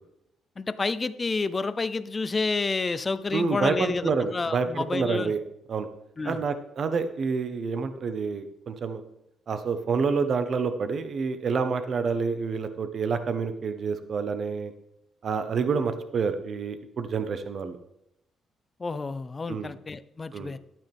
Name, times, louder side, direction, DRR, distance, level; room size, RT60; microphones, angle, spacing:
voice 1, 0.6-5.3 6.2-6.4 18.8-20.6, left 3 dB, 30° left, 14 dB, 0.6 m, -29 dB
voice 2, 3.3-5.4 5.7-5.9 6.2-9.0 9.5-14.7 15.2-17.8 19.5-19.7 20.3-20.5, right 5 dB, 55° right, 9 dB, 1.1 m, -28 dB
12.0 x 8.9 x 3.6 m, 0.80 s
cardioid pair, 90°, 0 cm